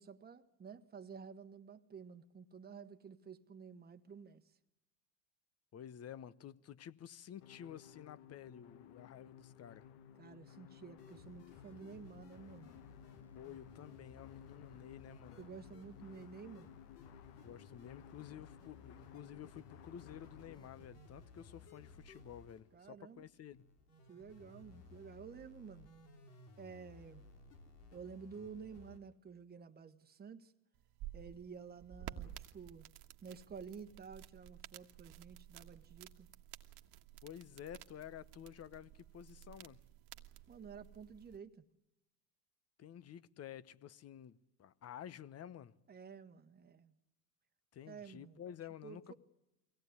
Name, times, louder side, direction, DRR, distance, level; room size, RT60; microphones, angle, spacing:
voice 1, 0.0-4.6 10.2-12.7 15.4-16.7 22.7-23.3 24.1-25.9 26.6-27.3 27.9-30.5 31.1-32.9 33.2-36.3 40.5-41.6 45.9-47.0 47.8-48.4 48.8-49.1, right 6 dB, 20° right, 1.3 m, -52 dB
voice 2, 5.7-9.9 13.3-15.4 17.4-23.7 37.2-39.8 42.8-45.7 47.7-49.1, left 10 dB, 30° left, 1.0 m, -51 dB
sound 1, 7.4-20.7, left 9 dB, 55° left, 1.4 m, -58 dB
sound 2, 11.0-29.0, left 3 dB, 85° left, 3.8 m, -59 dB
sound 3, 30.7-41.4, right 12 dB, 55° right, 1.6 m, -53 dB
24.0 x 17.5 x 9.6 m
hypercardioid pair, 95°, 47 cm